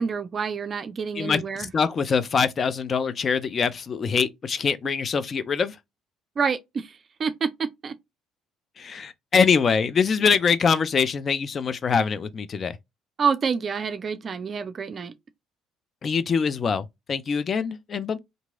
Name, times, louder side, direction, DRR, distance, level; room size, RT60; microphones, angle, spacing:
voice 1, 0.0-1.7 6.4-7.9 13.2-15.1, right 6 dB, 40° right, 0.4 m, -28 dB
voice 2, 1.2-5.8 8.8-12.8 16.0-18.2, left 5 dB, 40° left, 0.4 m, -24 dB
2.9 x 2.6 x 2.3 m
hypercardioid pair, 55°, 0 cm